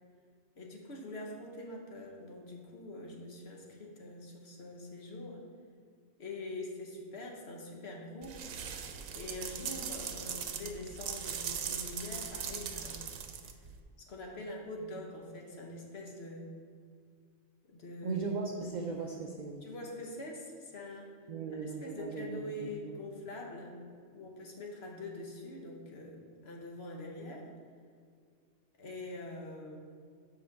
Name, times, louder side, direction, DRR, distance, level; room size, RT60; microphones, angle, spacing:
voice 1, 0.6-5.4 6.2-8.4 9.1-13.1 14.0-16.5 17.6-18.2 19.6-21.2 21.5-23.8 24.1-27.5 28.8-29.8, left 1 dB, 55° left, 0 dB, 1.2 m, -44 dB
sound 1, 8.2-13.8, right 7 dB, 90° right, 1.0 m, -40 dB
voice 2, 18.0-19.6 21.3-23.0, right 4 dB, 55° right, 1 dB, 0.5 m, -38 dB
5.6 x 4.8 x 6.4 m, 2.1 s
omnidirectional pair, 1.4 m